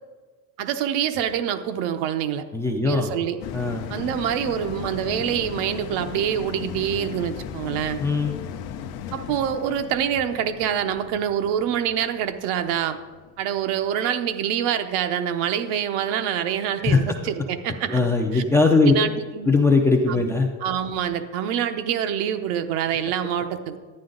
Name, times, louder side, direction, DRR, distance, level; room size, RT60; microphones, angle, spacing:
voice 1, 0.6-2.4 2.8-3.4 3.9-8.0 9.1-13.0 13.4-18.0 18.3-18.4 18.9-19.5 20.1-20.3 20.6-23.8, right 9 dB, 75° right, 8 dB, 0.9 m, -26 dB
voice 2, 2.5-3.1 3.5-3.9 8.0-8.3 16.8-17.2 17.9-18.9 19.5-20.5, left 3 dB, 5° left, 1 dB, 0.4 m, -20 dB
sound 1, 3.4-14.1 14.5-14.6, left 8 dB, 60° left, 0.7 m, -37 dB
11.0 x 9.6 x 3.8 m, 1.5 s
cardioid pair, 170°, 40 cm